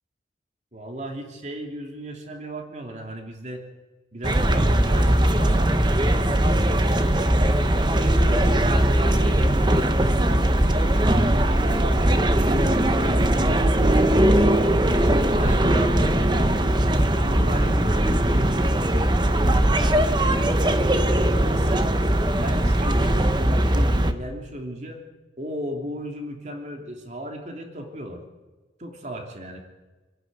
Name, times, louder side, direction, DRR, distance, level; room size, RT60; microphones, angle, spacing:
voice 1, 0.7-3.6 4.1-7.1 7.8-11.1 12.0-14.8 15.3-18.9 19.3-20.5 21.4-21.9 22.4-25.0 25.4-28.2 28.8-29.6, right 1 dB, 40° right, 3 dB, 3.0 m, -36 dB
sound 1, 4.2-24.1, right 1 dB, 25° right, 1.0 m, -20 dB
27.0 x 11.0 x 9.5 m, 1.3 s
head